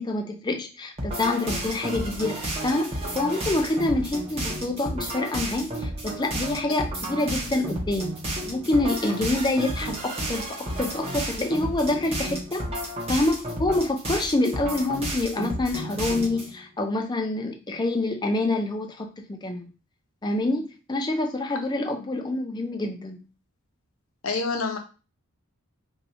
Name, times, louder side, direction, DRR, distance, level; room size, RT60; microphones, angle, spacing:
voice 1, 0.0-12.6 13.1-19.7 20.2-23.3, left 2 dB, 20° left, 4 dB, 0.5 m, -27 dB
sound 1, 1.0-16.5, right 1 dB, 25° right, 0.9 m, -32 dB
voice 2, 24.2-24.8, left 4 dB, 65° left, 3 dB, 0.7 m, -28 dB
2.7 x 2.3 x 4.1 m, 0.33 s
head